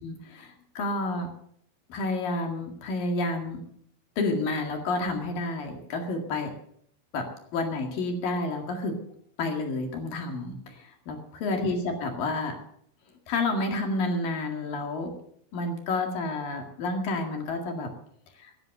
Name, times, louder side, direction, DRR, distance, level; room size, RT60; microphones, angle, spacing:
voice 1, 0.0-1.3 1.9-3.6 4.2-6.5 7.1-7.3 7.5-9.0 9.4-12.6 13.3-15.1 15.5-17.9 18.4-18.5, left 2 dB, 55° left, 3 dB, 3.2 m, -30 dB
16.5 x 11.0 x 6.6 m, 0.66 s
omnidirectional pair, 5.7 m